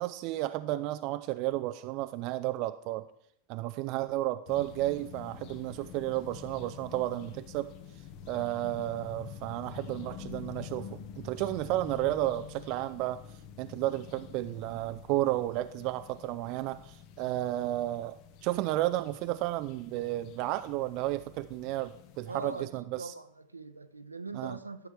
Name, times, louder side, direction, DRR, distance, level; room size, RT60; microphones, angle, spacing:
voice 1, 0.0-3.0 3.5-7.7 8.3-13.2 13.6-18.2 18.4-23.1 24.3-24.6, right 16 dB, 40° right, 11 dB, 0.4 m, -32 dB
sound 1, 4.5-22.6, left 9 dB, 45° left, 1.0 m, -48 dB
voice 2, 22.3-24.9, right 3 dB, 80° right, 10 dB, 0.8 m, -42 dB
13.0 x 7.1 x 4.6 m, 0.73 s
figure-of-eight pair, 90°, 0 cm